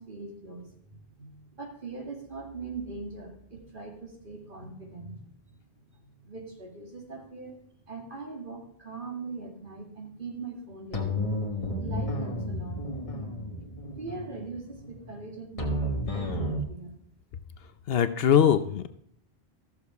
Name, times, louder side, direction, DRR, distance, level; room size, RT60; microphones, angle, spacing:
voice 1, 0.0-5.2 5.5-5.6 6.0-7.6 7.9-11.3 11.8-13.1 14.0-17.0, right 3 dB, 55° right, 1 dB, 2.6 m, -41 dB
sound 1, 10.9-16.6, left 1 dB, 35° left, 1.6 m, -32 dB
voice 2, 17.9-18.9, left 8 dB, 70° left, 11 dB, 1.0 m, -21 dB
14.0 x 7.1 x 4.7 m, 0.69 s
omnidirectional pair, 1.0 m